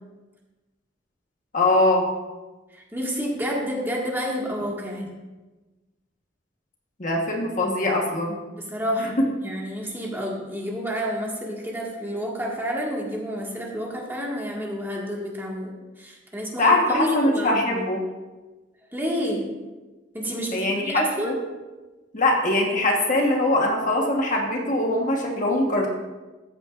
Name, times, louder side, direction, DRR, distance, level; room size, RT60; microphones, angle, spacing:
voice 1, 1.5-2.0 5.0-5.1 7.0-8.4 9.0-9.3 16.6-18.0 20.5-21.3 22.1-25.9, left 1 dB, 45° left, 0 dB, 1.3 m, -22 dB
voice 2, 2.7-5.1 8.6-17.8 18.9-19.5 20.1-21.4, equal, 10° right, -3 dB, 1.8 m, -29 dB
14.0 x 8.4 x 2.5 m, 1.2 s
head